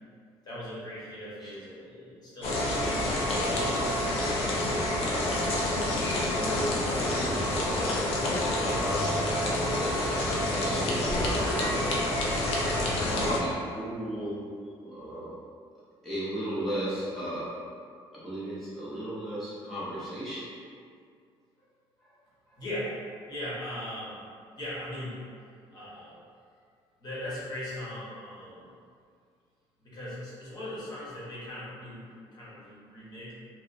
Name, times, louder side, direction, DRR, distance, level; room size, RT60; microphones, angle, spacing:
voice 1, 0.4-3.1 3.4-5.3 22.6-23.0 23.3-24.2 24.6-25.2 25.7-26.2 27.0-28.7 29.8-33.3, left 1 dB, 40° left, -8 dB, 0.9 m, -39 dB
sound 1, 2.4-13.4, left 1 dB, 75° left, 0.5 m, -28 dB
voice 2, 6.4-12.1 12.9-14.5 14.8-15.3 16.0-17.6 18.1-20.5 22.0-22.1 22.5-22.6, right 1 dB, ahead, -11 dB, 0.6 m, -36 dB
2.9 x 2.1 x 2.5 m, 2.2 s
cardioid pair, 120°, 10 cm